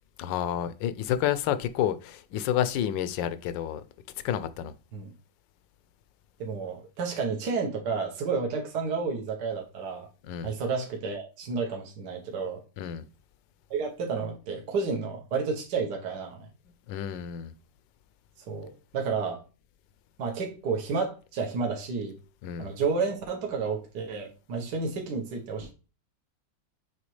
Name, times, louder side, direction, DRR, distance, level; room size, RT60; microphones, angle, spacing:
voice 1, 0.2-3.8 4.2-4.7 10.3-10.5 12.8-13.0 16.9-17.5 22.4-22.7, left 10 dB, 75° left, 1.3 m, -29 dB
voice 2, 6.4-10.1 10.4-12.6 13.7-16.5 18.5-19.4 20.2-22.2 22.6-25.7, right 4 dB, 65° right, 1.6 m, -31 dB
7.2 x 4.4 x 3.2 m
omnidirectional pair, 2.1 m